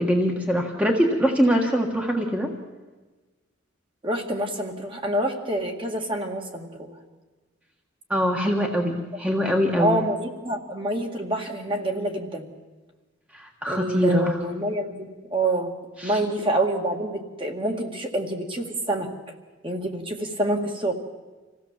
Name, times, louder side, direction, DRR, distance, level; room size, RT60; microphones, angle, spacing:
voice 1, 0.0-2.5 8.1-10.0 13.3-14.4 16.0-16.2, equal, 5° right, 1 dB, 1.6 m, -23 dB
voice 2, 4.0-6.9 9.8-12.5 13.7-15.7 16.0-19.1 19.6-20.9, right 1 dB, 25° right, 2 dB, 2.0 m, -27 dB
26.5 x 16.0 x 7.4 m, 1.3 s
head